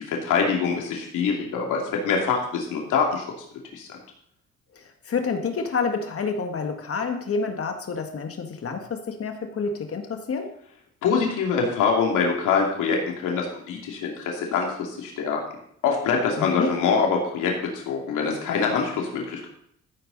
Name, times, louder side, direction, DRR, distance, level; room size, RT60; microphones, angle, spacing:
voice 1, 0.0-3.2 3.7-3.9 11.0-15.4 15.8-19.5, left 5 dB, 85° left, 0 dB, 2.7 m, -24 dB
voice 2, 4.7-10.5 16.4-16.8, left 5 dB, 50° left, 5 dB, 1.8 m, -28 dB
14.5 x 8.4 x 4.0 m, 0.69 s
cardioid pair, 90°, 30 cm